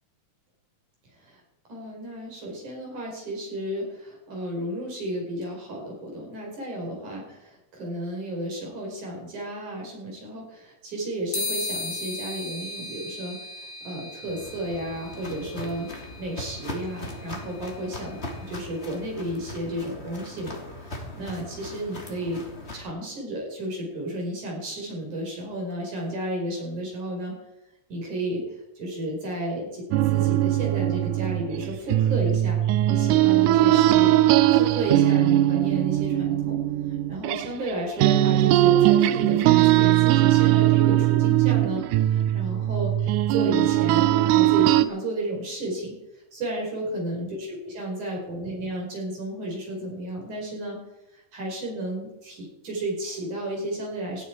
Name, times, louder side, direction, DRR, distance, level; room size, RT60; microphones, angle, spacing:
voice 1, 1.7-22.4 22.7-27.3 27.9-28.4 28.8-29.8 30.1-32.6 32.9-34.2 34.5-36.6 37.1-41.8 42.1-45.9 46.3-47.4 47.8-50.8 51.1-54.2, right 1 dB, 55° right, -1 dB, 6.2 m, -33 dB
sound 1, 11.3-19.0, left 3 dB, 60° left, 0.7 m, -37 dB
Walk footsteps, 14.3-22.8, left 1 dB, 20° left, 2.7 m, -39 dB
sound 2, 29.9-37.7 38.0-44.8, right 14 dB, 80° right, 1.9 m, -20 dB
18.5 x 13.5 x 4.7 m, 0.91 s
omnidirectional pair, 4.1 m